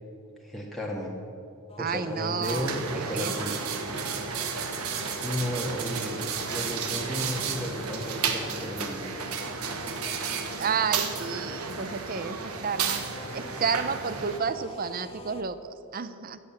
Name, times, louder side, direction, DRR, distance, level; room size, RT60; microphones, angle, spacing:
voice 1, 0.4-1.1 1.8-3.5 5.2-6.1 6.5-9.0, equal, ahead, -3 dB, 1.6 m, -33 dB
sound 1, 1.7-15.4, left 2 dB, 25° left, 0.8 m, -45 dB
voice 2, 1.8-3.3 10.6-12.4 12.6-16.4, right 5 dB, 40° right, 13 dB, 0.6 m, -31 dB
sound 2, 2.4-14.4, right 6 dB, 90° right, 1.4 m, -33 dB
14.5 x 7.9 x 8.8 m, 2.7 s
head